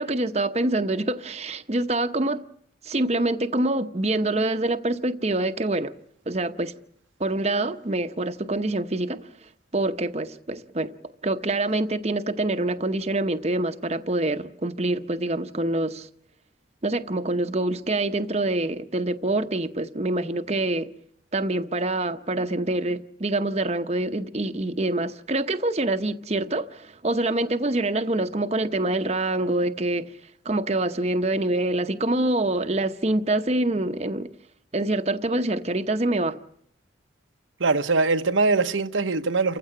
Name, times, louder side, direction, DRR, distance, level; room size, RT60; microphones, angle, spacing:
voice 1, 0.0-2.4 2.8-5.9 6.3-6.7 7.2-9.3 9.7-16.1 16.8-20.9 21.3-30.1 30.4-34.3 34.7-36.4, right 2 dB, 35° right, 0.9 m, -25 dB
voice 2, 37.6-39.6, right 3 dB, 90° right, 1.1 m, -22 dB
29.0 x 15.5 x 8.6 m
head